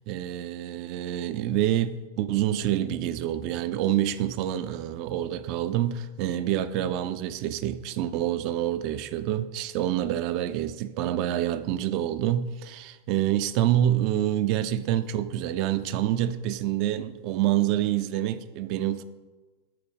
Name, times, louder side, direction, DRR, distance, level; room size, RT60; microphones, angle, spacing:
voice 1, 0.1-19.0, right 12 dB, 45° right, 0.3 m, -27 dB
9.2 x 4.0 x 3.6 m
figure-of-eight pair, 90°, 0 cm